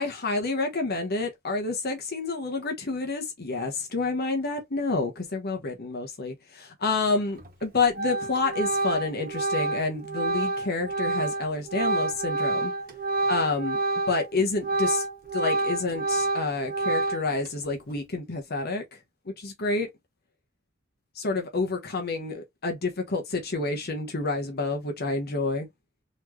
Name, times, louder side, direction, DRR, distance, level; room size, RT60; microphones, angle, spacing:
voice 1, 0.0-12.7 13.3-13.8 14.1-15.0 15.3-18.8 19.4-19.9 21.1-25.7, left 3 dB, 50° left, 1.0 m, -29 dB
Organ, 7.4-7.6 7.9-14.3 14.6-17.5, right 2 dB, 50° right, 1.5 m, -28 dB
4.2 x 3.1 x 3.0 m
head